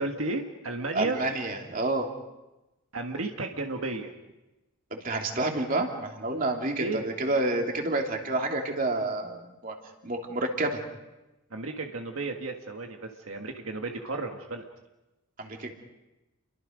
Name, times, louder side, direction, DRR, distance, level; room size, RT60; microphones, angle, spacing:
voice 1, 0.0-1.2 2.9-4.1 6.8-7.1 11.5-14.7, right 2 dB, 70° right, 3 dB, 1.8 m, -33 dB
voice 2, 0.9-2.1 4.9-9.8 10.0-10.8 15.4-15.7, right 2 dB, 40° right, 2 dB, 2.9 m, -29 dB
30.0 x 23.5 x 5.2 m, 1.0 s
head